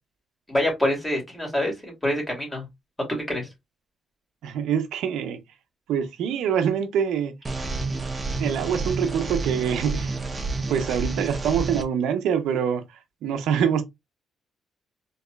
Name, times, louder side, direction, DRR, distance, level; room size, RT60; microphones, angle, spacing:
voice 1, 0.5-2.7 3.1-3.5, left 1 dB, 15° left, 2.2 m, -26 dB
voice 2, 4.4-5.4 5.9-7.3 8.4-10.1 10.7-12.8 13.2-13.8, right 8 dB, 85° right, 0.5 m, -25 dB
sound 1, 7.4-11.8, right 3 dB, 25° right, 0.7 m, -29 dB
3.9 x 2.8 x 2.2 m
cardioid pair, 90°, 0 cm